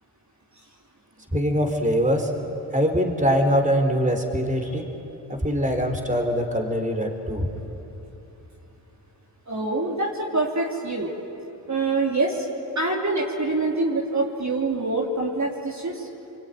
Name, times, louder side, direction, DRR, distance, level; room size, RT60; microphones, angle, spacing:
voice 1, 1.3-2.3 2.7-4.9 5.3-7.5, equal, 15° right, 4 dB, 4.0 m, -23 dB
voice 2, 9.5-11.1 11.7-12.5 12.8-16.1, right 2 dB, 35° right, -2 dB, 3.5 m, -25 dB
24.0 x 23.5 x 9.4 m, 3.0 s
supercardioid pair, 55°, 46 cm